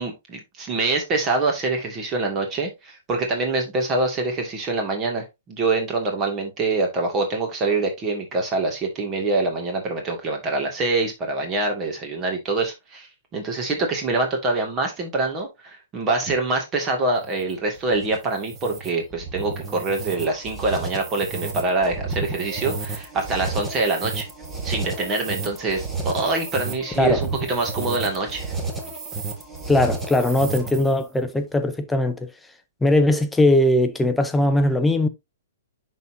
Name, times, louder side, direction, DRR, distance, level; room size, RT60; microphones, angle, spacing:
voice 1, 0.0-24.3 24.6-28.5, right 3 dB, 25° right, 2.3 m, -25 dB
sound 1, 17.2-31.0, right 3 dB, 10° right, 1.7 m, -32 dB
voice 2, 29.7-32.3 32.8-35.1, left 1 dB, 5° left, 0.8 m, -20 dB
10.5 x 4.1 x 2.8 m
hypercardioid pair, 125°, 0 cm